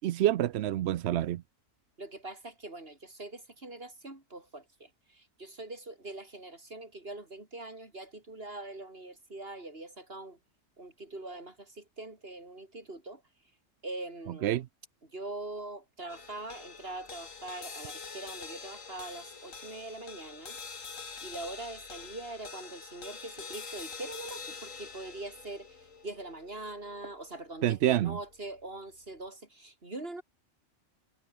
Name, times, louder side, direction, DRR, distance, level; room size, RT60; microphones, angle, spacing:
voice 1, 0.0-1.4 14.4-14.6 27.6-28.2, right 12 dB, 65° right, 0.8 m, -27 dB
voice 2, 2.0-10.4 10.8-13.2 13.8-14.6 15.1-20.6 21.2-30.2, right 2 dB, 45° right, 4.6 m, -43 dB
sound 1, 16.1-28.6, left 5 dB, 85° left, 2.5 m, -46 dB
omnidirectional pair, 1.3 m